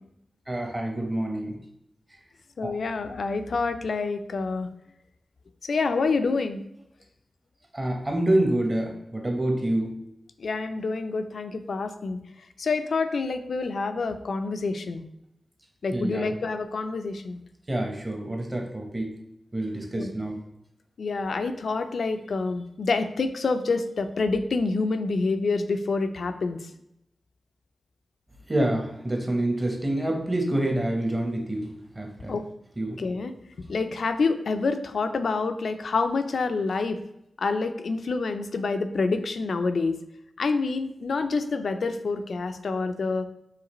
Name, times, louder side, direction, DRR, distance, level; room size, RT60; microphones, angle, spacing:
voice 1, 0.5-1.6 2.6-2.7 7.7-9.9 15.9-16.3 17.7-19.1 19.5-20.4 28.5-31.7 32.0-32.4 32.8-33.0, right 1 dB, 20° right, 2 dB, 0.9 m, -27 dB
voice 2, 2.6-4.7 5.6-6.6 10.4-12.2 12.6-15.0 15.8-17.4 19.9-20.1 21.0-26.7 32.3-32.4 33.0-33.3 33.7-37.0 37.4-40.0 40.4-43.3, left 4 dB, 65° left, 9 dB, 0.4 m, -27 dB
4.9 x 3.2 x 3.0 m, 0.81 s
wide cardioid pair, 145°, 0 cm